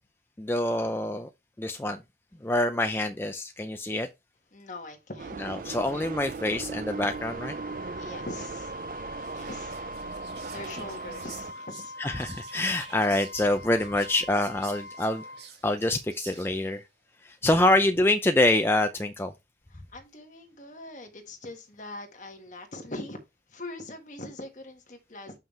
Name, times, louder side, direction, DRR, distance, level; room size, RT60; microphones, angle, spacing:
voice 1, 0.4-1.3 1.6-2.0 2.4-4.1 5.4-7.5 12.0-15.2 15.6-16.8 17.2-19.3, left 1 dB, 15° left, 0.4 m, -26 dB
voice 2, 4.5-5.4 8.0-8.7 9.3-9.7 10.5-11.9 19.7-23.2 23.5-25.4, left 2 dB, 45° left, 1.6 m, -42 dB
sound 1, 5.2-11.5, right 4 dB, 50° right, 0.4 m, -38 dB
Wind instrument woodwind instrument, 6.9-15.5, left 2 dB, 60° left, 1.1 m, -43 dB
Whispering, 9.2-16.8, right 7 dB, 70° right, 1.9 m, -50 dB
7.2 x 5.7 x 3.2 m
head